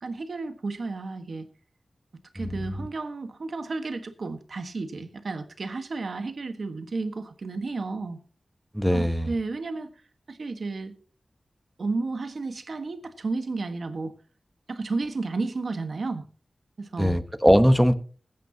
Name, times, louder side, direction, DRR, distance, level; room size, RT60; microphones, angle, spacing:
voice 1, 0.0-1.5 2.3-8.2 8.9-9.9 10.3-10.9 11.8-14.1 14.7-16.2 16.8-17.2, right 3 dB, 65° right, 8 dB, 1.4 m, -32 dB
voice 2, 2.4-2.9 8.7-9.4 17.0-17.9, equal, ahead, 10 dB, 1.1 m, -21 dB
21.0 x 9.3 x 2.8 m, 0.40 s
wide cardioid pair, 90°, 0 cm